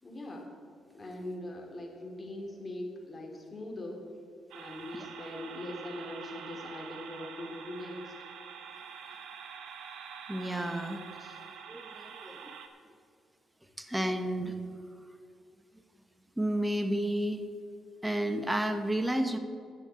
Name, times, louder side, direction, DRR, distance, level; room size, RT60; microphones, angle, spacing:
voice 1, 0.0-0.5 0.9-4.0 4.5-8.1 9.1-9.2 11.2-11.4, left 1 dB, 25° left, 0 dB, 2.9 m, -41 dB
sound 1, 4.5-12.7, right 7 dB, 75° right, 1.1 m, -46 dB
voice 2, 10.3-11.0 11.7-12.5 13.8-14.7 16.4-17.5 18.0-19.4, right 1 dB, 10° right, 7 dB, 1.1 m, -31 dB
11.5 x 6.4 x 8.9 m, 2.3 s
cardioid pair, 90°, 0 cm